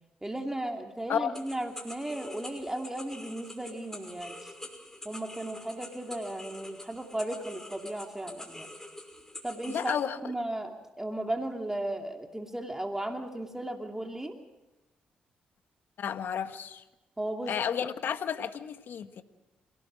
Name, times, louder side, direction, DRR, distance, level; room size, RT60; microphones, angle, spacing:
voice 1, 0.2-4.5 5.0-8.7 9.4-14.4 17.2-17.6, right 1 dB, 10° right, 3 dB, 2.7 m, -35 dB
sound 1, 1.3-10.0, left 1 dB, 10° left, 5.7 m, -46 dB
voice 2, 9.7-10.2 16.0-16.8 17.5-19.2, left 8 dB, 65° left, 9 dB, 1.6 m, -32 dB
28.5 x 18.0 x 6.3 m, 1.0 s
hypercardioid pair, 45°, 4 cm